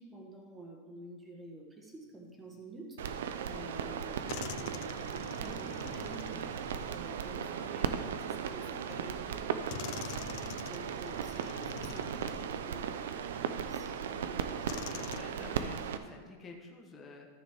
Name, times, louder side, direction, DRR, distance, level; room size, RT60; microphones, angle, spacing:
voice 1, 0.0-6.5 6.9-15.2 16.0-16.1, right 2 dB, 10° right, 0 dB, 1.5 m, -50 dB
sound 1, 3.0-16.0, right 7 dB, 85° right, 0.6 m, -37 dB
sound 2, 3.6-3.7 4.3-7.9 8.9-9.0 9.7-13.0 13.6-13.7 14.7-15.2, left 14 dB, 45° left, 0.4 m, -46 dB
voice 2, 7.4-8.1 8.4-9.5 14.7-17.3, left 4 dB, 15° left, 1 dB, 1.0 m, -51 dB
13.5 x 6.7 x 3.6 m, 1.5 s
supercardioid pair, 165°, 0 cm